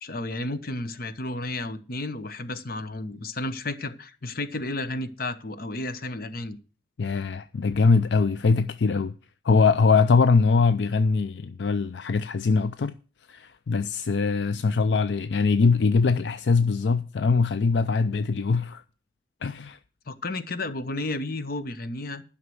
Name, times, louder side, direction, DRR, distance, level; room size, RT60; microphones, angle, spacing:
voice 1, 0.0-6.6 20.1-22.2, left 2 dB, 55° left, 1.0 m, -32 dB
voice 2, 7.0-9.2 9.4-12.9 13.3-18.8 19.4-19.8, left 4 dB, 75° left, 0.5 m, -22 dB
11.5 x 5.8 x 7.7 m
head